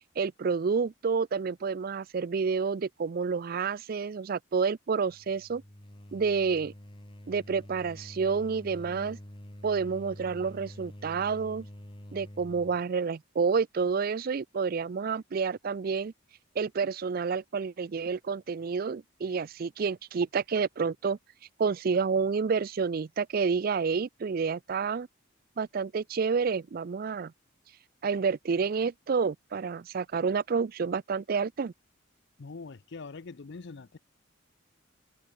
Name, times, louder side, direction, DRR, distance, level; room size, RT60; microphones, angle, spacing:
voice 1, 0.2-5.6 6.1-6.7 7.3-9.2 9.6-11.7 12.1-16.1 16.6-21.2 21.6-25.1 25.6-27.3 28.0-31.7, right 5 dB, 45° right, 0.4 m, -29 dB
sound 1, 5.1-12.8, equal, 25° left, 2.2 m, -47 dB
voice 2, 32.4-34.0, left 4 dB, 55° left, 0.6 m, -43 dB
head